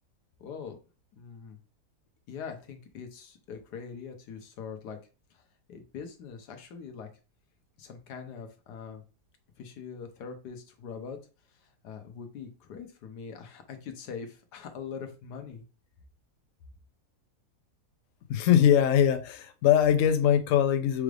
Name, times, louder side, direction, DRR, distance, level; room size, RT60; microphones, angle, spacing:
voice 1, 0.4-0.8 1.1-1.6 2.3-5.0 5.3-5.4 5.7-7.1 7.8-9.0 9.6-11.2 11.5-15.6, left 6 dB, 85° left, 1.4 m, -42 dB
voice 2, 18.3-21.0, left 9 dB, 70° left, 0.8 m, -22 dB
4.8 x 2.4 x 3.2 m
omnidirectional pair, 1.7 m